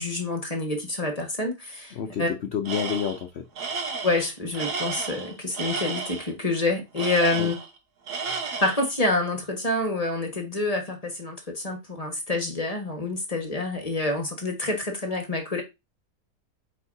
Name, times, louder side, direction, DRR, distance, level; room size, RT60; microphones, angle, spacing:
voice 1, 0.0-2.3 4.0-7.6 8.4-15.6, left 2 dB, 25° left, 1.4 m, -27 dB
voice 2, 1.9-3.5 7.4-7.5, left 8 dB, 60° left, 0.7 m, -29 dB
Tools, 2.7-3.2 3.6-6.3 7.0-7.8 8.1-8.9, right 5 dB, 90° right, 1.6 m, -32 dB
8.1 x 4.6 x 2.7 m
omnidirectional pair, 1.7 m